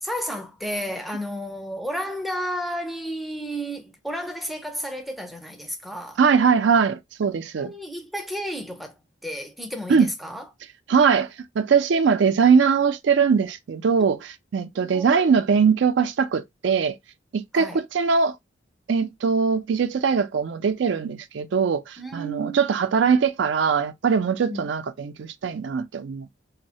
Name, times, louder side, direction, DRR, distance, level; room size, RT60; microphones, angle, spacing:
voice 1, 0.0-6.2 7.6-10.5 14.8-15.4 17.5-17.8 22.0-22.7 24.4-24.7, equal, ahead, 0.4 m, -32 dB
voice 2, 6.2-7.7 9.9-10.1 10.9-17.0 17.3-18.4 18.9-26.3, right 6 dB, 70° right, 0.4 m, -21 dB
3.0 x 2.1 x 2.7 m
head